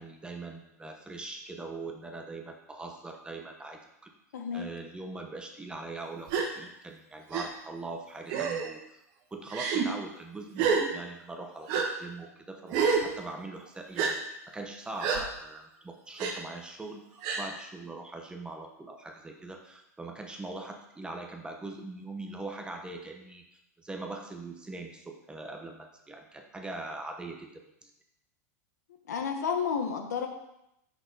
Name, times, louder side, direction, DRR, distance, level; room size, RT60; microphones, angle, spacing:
voice 1, 0.0-4.1 4.5-9.0 9.3-23.4 23.8-27.9, right 2 dB, 10° right, 3 dB, 0.8 m, -42 dB
voice 2, 4.3-4.6 29.1-30.3, left 6 dB, 85° left, 5 dB, 1.1 m, -31 dB
Gasp, 6.3-6.5 7.3-7.4 8.3-8.7 9.5-9.8 10.6-10.8 11.7-11.8 12.7-13.0 14.0-14.1 15.0-15.2 16.2-16.3 17.2-17.4, right 5 dB, 50° right, 1.3 m, -27 dB
6.2 x 6.1 x 4.0 m, 0.82 s
hypercardioid pair, 120°, 9 cm